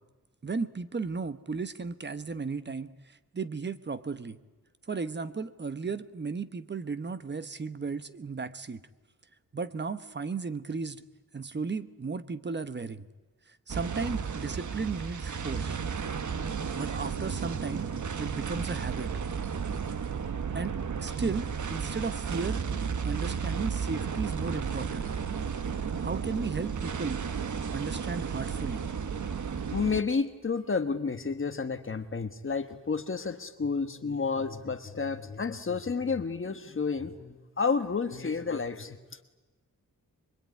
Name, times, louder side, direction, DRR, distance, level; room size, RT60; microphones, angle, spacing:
voice 1, 0.4-4.4 4.9-8.8 9.5-11.0 11.3-13.1 13.5-15.8 16.7-17.9 18.2-19.1 20.5-22.6 23.0-25.1 26.0-27.2 27.7-28.8, right 4 dB, 30° right, 12 dB, 1.0 m, -35 dB
sound 1, 13.7-30.0, right 6 dB, 60° right, 1.3 m, -33 dB
voice 2, 29.7-39.0, left 5 dB, 35° left, 8 dB, 1.4 m, -31 dB
25.0 x 23.5 x 9.5 m, 1.2 s
wide cardioid pair, 165°, 34 cm